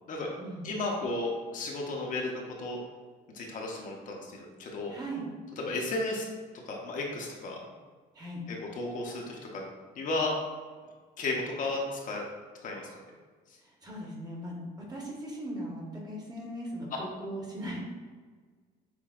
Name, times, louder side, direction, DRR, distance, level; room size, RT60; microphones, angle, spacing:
voice 1, 0.6-2.8 3.3-5.0 5.6-6.3 6.7-7.6 8.5-9.6 10.0-10.3 11.2-12.2 12.6-12.9, left 2 dB, 50° left, -1 dB, 0.7 m, -34 dB
voice 2, 4.9-5.2 8.1-8.4 13.6-14.6 14.9-17.8, right 1 dB, 25° right, -2 dB, 0.9 m, -39 dB
5.8 x 2.2 x 2.3 m, 1.5 s
cardioid pair, 110°, 17 cm